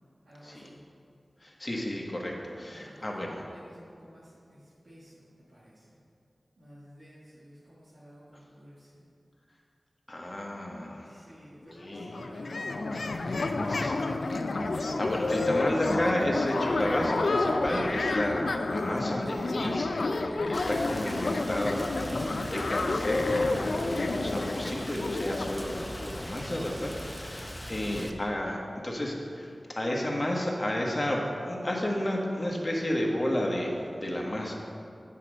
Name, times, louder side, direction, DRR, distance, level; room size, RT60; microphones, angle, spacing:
voice 1, 0.2-0.8 1.6-1.9 2.6-5.9 6.6-9.0 11.0-14.3 27.7-28.1, equal, 85° right, -10 dB, 1.7 m, -52 dB
voice 2, 1.4-3.3 10.1-11.1 11.8-12.1 13.7-14.0 14.7-34.5, left 1 dB, 35° left, -1 dB, 1.3 m, -32 dB
sound 1, 11.6-11.7 11.9-26.5, left 2 dB, 85° left, 0.4 m, -30 dB
Rain, 20.5-28.1, equal, 15° left, 0.6 m, -40 dB
8.3 x 4.8 x 6.3 m, 2.4 s
wide cardioid pair, 60°, 0 cm